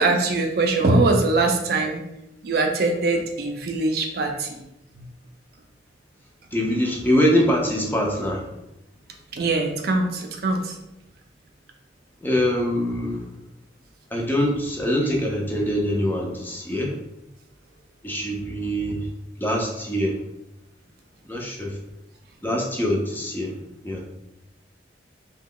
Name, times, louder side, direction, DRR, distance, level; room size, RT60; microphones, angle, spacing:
voice 1, 0.0-2.0 2.4-4.7 4.9-5.0 9.3-10.8, right 3 dB, 55° right, 3 dB, 0.4 m, -22 dB
voice 2, 6.5-8.5 12.2-13.2 14.1-17.0 18.0-19.1 19.4-20.2 21.3-21.8 22.4-23.5 23.8-24.0, equal, 10° left, -1 dB, 0.4 m, -24 dB
3.0 x 2.2 x 3.6 m, 0.89 s
head